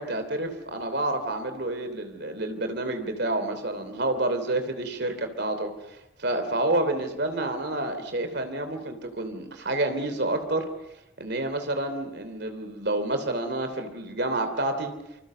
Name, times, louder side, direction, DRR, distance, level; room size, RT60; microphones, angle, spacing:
voice 1, 0.0-10.7 11.2-14.9, right 2 dB, 55° right, 8 dB, 3.1 m, -29 dB
28.0 x 26.5 x 6.8 m, 0.92 s
head